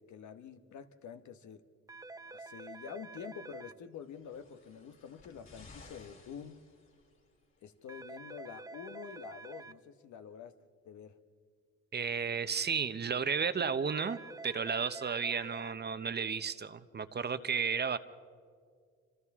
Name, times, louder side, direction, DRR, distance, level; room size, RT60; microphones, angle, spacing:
voice 1, 0.0-1.6 2.2-6.7 7.6-10.6 10.8-11.2, left 7 dB, 70° left, 9 dB, 1.2 m, -47 dB
sound 1, 1.9-3.7 7.9-9.7 13.9-15.7, right 3 dB, 10° right, 0.6 m, -48 dB
sound 2, 4.0-7.4 8.3-8.4, left 3 dB, 45° left, 4.3 m, -57 dB
voice 2, 11.9-14.2 14.4-18.0, right 6 dB, 35° right, 12 dB, 0.9 m, -33 dB
28.0 x 26.5 x 3.7 m, 2.1 s
cardioid pair, 90°, 30 cm